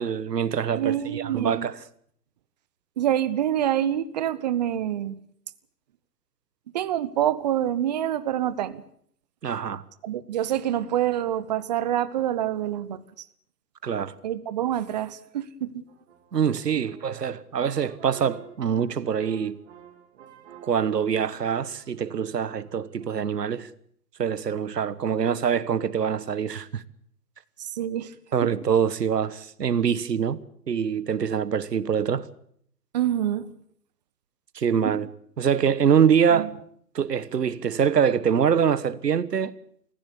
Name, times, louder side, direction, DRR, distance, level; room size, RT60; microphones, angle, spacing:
voice 1, 0.0-1.8 9.4-9.8 13.8-14.1 16.3-19.6 20.6-23.7 24.2-26.8 28.3-32.3 34.5-35.1 35.4-36.5 36.9-39.5, right 7 dB, 75° right, 1.3 m, -24 dB
voice 2, 0.7-1.7 3.0-5.2 6.7-8.8 10.0-13.2 14.2-15.8 27.6-28.1 28.4-28.5 32.9-33.5 34.8-34.9 36.3-36.5, right 11 dB, 25° right, 0.8 m, -26 dB
sound 1, 15.9-23.1, right 8 dB, 45° right, 2.8 m, -49 dB
21.0 x 15.5 x 8.6 m
hypercardioid pair, 140°, 49 cm